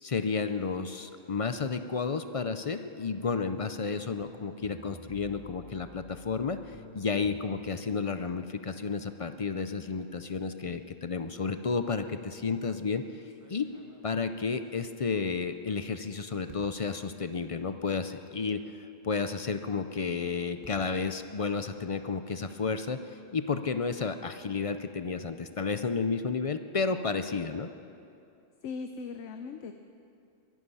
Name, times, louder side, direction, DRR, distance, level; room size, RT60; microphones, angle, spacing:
voice 1, 0.0-13.0 13.5-13.7 14.0-27.7, left 5 dB, 45° left, 9 dB, 0.5 m, -32 dB
sound 1, 4.2-7.4, right 1 dB, ahead, 1.0 m, -52 dB
sound 2, 13.3-16.0 16.5-17.0 17.8-17.9 18.2-18.3 19.9-22.2, right 2 dB, 15° right, 1.8 m, -57 dB
voice 2, 28.6-29.7, left 5 dB, 75° left, 7 dB, 1.0 m, -38 dB
23.0 x 11.0 x 5.5 m, 2.6 s
omnidirectional pair, 1.2 m